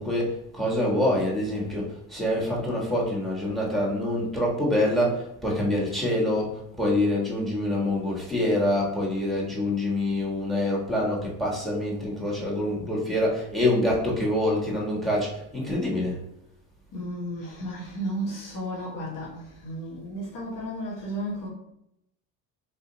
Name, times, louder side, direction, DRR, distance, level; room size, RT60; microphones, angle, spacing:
voice 1, 0.0-16.2, left 1 dB, ahead, -4 dB, 1.4 m, -26 dB
voice 2, 16.9-21.5, right 1 dB, 50° left, -6 dB, 1.4 m, -33 dB
3.7 x 2.7 x 2.8 m, 0.79 s
supercardioid pair, 95°, 41 cm